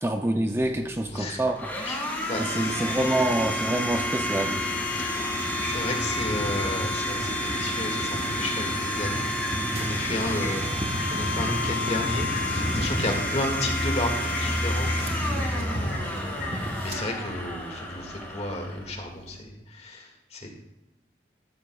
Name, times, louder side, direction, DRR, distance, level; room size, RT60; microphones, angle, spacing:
voice 1, 0.0-1.7 2.4-4.6, right 1 dB, 15° right, 5 dB, 0.5 m, -26 dB
Domestic sounds home sounds, 0.6-19.4, left 1 dB, 10° left, 2.3 m, -31 dB
voice 2, 2.3-2.7 5.0-5.1 5.4-14.9 15.5-20.5, left 1 dB, 40° left, 2 dB, 2.0 m, -33 dB
sound 1, 2.7-17.0, equal, 35° right, 1.1 m, -33 dB
sound 2, 4.7-5.3 5.6-7.6 9.0-12.4 13.7-14.0 14.3-15.1 15.4-16.1 16.4-16.5 16.8-17.0, left 4 dB, 70° left, 4.4 m, -40 dB
13.5 x 12.5 x 2.3 m, 0.99 s
head